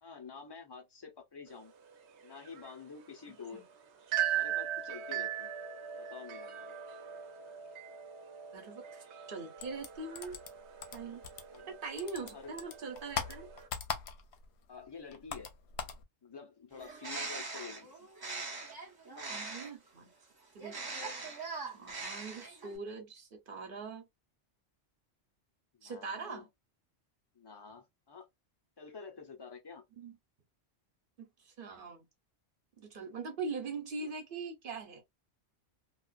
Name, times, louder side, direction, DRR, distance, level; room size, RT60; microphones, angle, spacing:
voice 1, 0.0-1.7 2.2-3.6 4.3-5.5 6.0-6.7 11.5-11.7 12.2-12.6 14.7-15.5 16.2-18.1 25.7-26.5 27.3-28.3 28.8-29.8 34.0-34.1, left 5 dB, 30° left, 0.6 m, -49 dB
sound 1, 1.5-13.7, right 10 dB, 80° right, 0.9 m, -40 dB
voice 2, 8.5-10.4 10.9-11.2 11.7-13.5 19.3-20.1 20.5-20.8 21.2-21.3 21.7-24.1 25.8-26.5 30.0-30.1 31.2-32.0 32.8-35.0, right 4 dB, 55° right, 1.0 m, -42 dB
sound 2, 9.6-11.7 12.0-14.5 14.7-16.0, left 6 dB, 70° left, 0.8 m, -40 dB
Bird, 16.7-19.9 20.6-22.8, right 3 dB, 25° right, 0.6 m, -41 dB
2.4 x 2.3 x 2.3 m
omnidirectional pair, 1.1 m